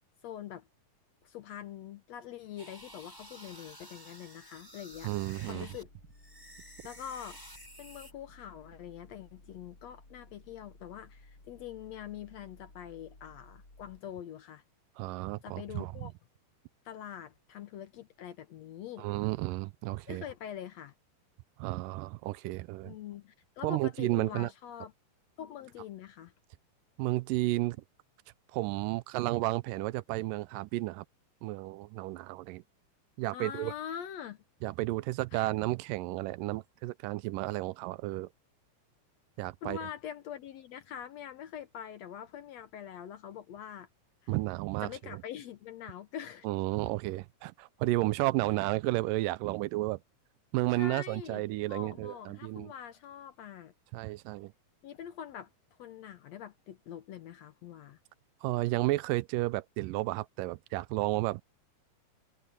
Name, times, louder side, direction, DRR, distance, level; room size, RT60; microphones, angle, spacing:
voice 1, 0.2-0.7 1.2-5.1 5.5-5.9 6.8-7.4 7.8-14.6 15.4-16.1 16.9-19.1 20.1-20.9 22.8-24.9 25.4-26.3 33.3-34.4 35.3-35.5 39.6-43.9 44.2-44.3 44.8-46.5 50.7-53.7 54.8-55.5 55.8-58.0, left 9 dB, 70° left, 1.7 m, -44 dB
sound 1, 2.6-5.8 6.1-8.1, equal, 5° right, 6.3 m, -51 dB
sound 2, 4.9-14.0, left 2 dB, 30° left, 8.8 m, -57 dB
voice 2, 5.0-5.7 15.0-16.1 19.0-20.2 21.6-22.9 23.6-24.5 27.0-27.8 28.5-31.1 31.4-32.6 33.2-33.7 34.6-38.3 39.4-39.8 44.3-44.9 46.4-50.0 50.5-52.7 53.9-54.5 58.4-61.4, right 19 dB, 85° right, 2.2 m, -32 dB
omnidirectional pair, 3.8 m